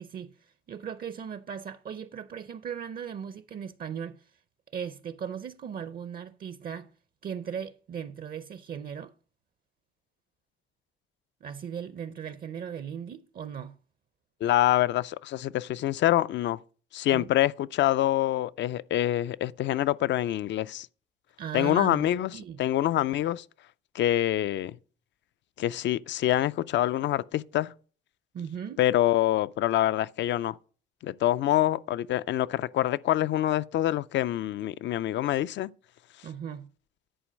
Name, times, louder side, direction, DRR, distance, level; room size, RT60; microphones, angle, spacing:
voice 1, 0.0-4.2 4.7-6.9 7.2-9.1 11.4-13.8 17.1-17.3 21.4-22.6 28.3-28.8 36.2-36.7, right 8 dB, 50° right, 0.5 m, -38 dB
voice 2, 14.4-16.6 16.9-20.9 21.5-22.3 22.6-23.4 23.9-24.8 25.6-27.7 28.8-30.5 31.0-35.7, left 13 dB, 65° left, 0.4 m, -26 dB
10.0 x 4.5 x 6.2 m
cardioid pair, 90°, 20 cm